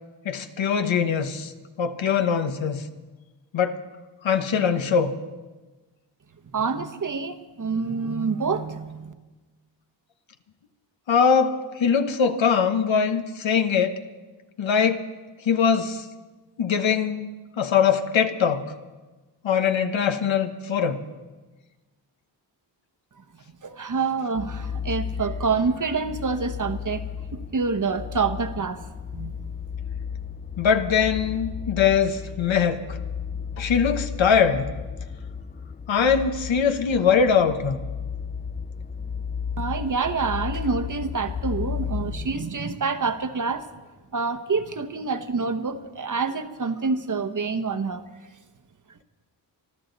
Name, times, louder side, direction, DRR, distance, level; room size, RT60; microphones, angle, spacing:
voice 1, 0.2-1.5 1.8-2.8 3.5-3.8 4.2-5.1 11.1-13.9 14.6-15.1 15.4-16.0 16.6-17.3 17.6-18.6 19.4-21.0 30.6-33.0 33.6-34.7 35.9-37.8, left 6 dB, 80° left, 8 dB, 1.2 m, -22 dB
voice 2, 6.5-9.1 23.6-27.0 27.3-28.8 29.1-29.4 39.6-43.7 44.1-48.0, right 4 dB, 45° right, 10 dB, 1.0 m, -27 dB
sound 1, 24.4-42.3, left 7 dB, 20° left, 0.4 m, -34 dB
25.0 x 13.0 x 4.0 m, 1.2 s
wide cardioid pair, 80°, 45 cm